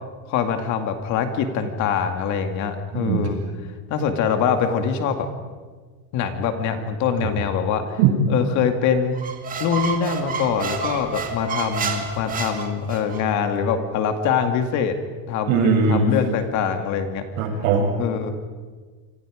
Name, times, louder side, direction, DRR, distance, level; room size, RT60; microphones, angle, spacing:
voice 1, 0.3-3.4 3.9-5.3 6.1-8.0 8.3-9.2 9.6-15.0 15.3-17.3 18.0-18.3, left 7 dB, 40° left, 7 dB, 2.2 m, -23 dB
voice 2, 2.9-3.3 8.0-8.1 15.5-16.1 17.4-17.9, right 6 dB, 70° right, 0 dB, 7.8 m, -19 dB
Squeak, 9.2-13.2, right 5 dB, 20° right, 2.3 m, -29 dB
28.0 x 25.5 x 5.1 m, 1.5 s
cardioid pair, 165°, 44 cm